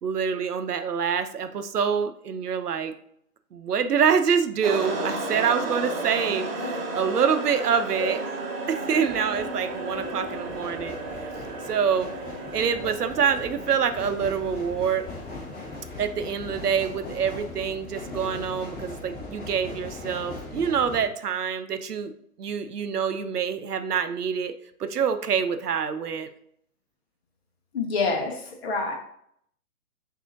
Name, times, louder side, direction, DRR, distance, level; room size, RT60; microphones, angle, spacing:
voice 1, 0.0-3.0 3.5-8.2 8.7-11.0 11.7-12.1 12.5-15.1 16.0-22.1 22.4-24.5 24.8-26.3, right 7 dB, 85° right, 10 dB, 0.6 m, -26 dB
sound 1, 4.6-16.1, right 2 dB, 40° right, 0.9 m, -34 dB
sound 2, 7.6-7.9 8.9-21.1, left 2 dB, 20° left, 1.2 m, -40 dB
voice 2, 27.7-28.9, left 3 dB, 45° left, 3 dB, 1.0 m, -27 dB
6.1 x 2.7 x 2.5 m, 0.68 s
figure-of-eight pair, 135°, 45 cm